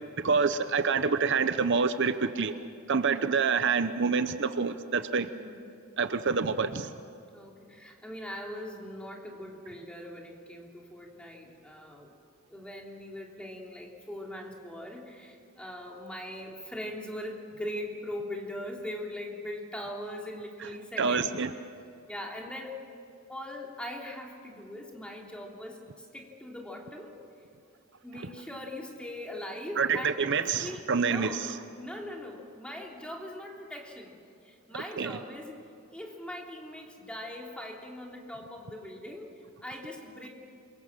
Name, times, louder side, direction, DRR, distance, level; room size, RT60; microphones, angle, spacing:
voice 1, 0.2-2.6 2.9-5.3 6.0-6.9 21.0-21.5 29.8-31.5 35.0-35.2, right 5 dB, 60° right, 11 dB, 0.8 m, -27 dB
voice 2, 3.0-3.5 5.3-5.7 7.3-12.1 12.5-21.7 22.1-22.8 23.3-27.1 28.0-31.5 31.8-34.1 34.4-35.6 35.9-39.3 39.6-40.3, left 1 dB, 5° left, -1 dB, 3.4 m, -41 dB
28.0 x 23.0 x 7.5 m, 2.6 s
head